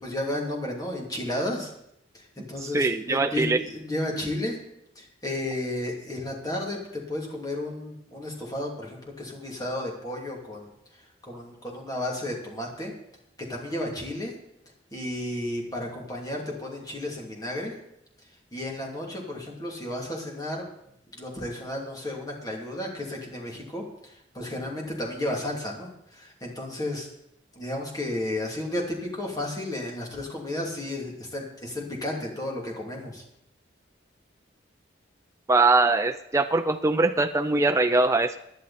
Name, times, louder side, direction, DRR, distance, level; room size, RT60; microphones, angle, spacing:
voice 1, 0.0-1.7 2.1-4.6 5.0-10.7 11.2-12.9 13.5-14.3 14.9-17.7 18.5-20.7 21.1-27.1 27.5-33.2, left 1 dB, 20° left, -1 dB, 2.9 m, -33 dB
voice 2, 2.6-3.6 35.5-38.4, right 3 dB, 15° right, 7 dB, 0.4 m, -22 dB
17.0 x 10.5 x 4.3 m, 0.78 s
head